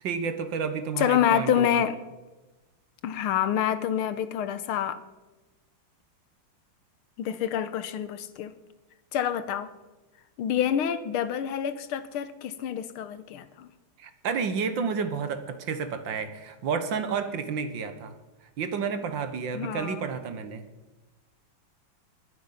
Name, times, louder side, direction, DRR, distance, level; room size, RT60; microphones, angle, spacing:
voice 1, 0.0-1.8 14.0-18.1 18.6-20.6, right 6 dB, 60° right, 10 dB, 1.7 m, -31 dB
voice 2, 1.0-2.0 3.0-5.0 7.2-8.5 9.1-9.7 10.4-13.7 19.5-20.1, left 9 dB, 80° left, 13 dB, 1.7 m, -27 dB
21.5 x 7.9 x 5.7 m, 1.1 s
omnidirectional pair, 2.4 m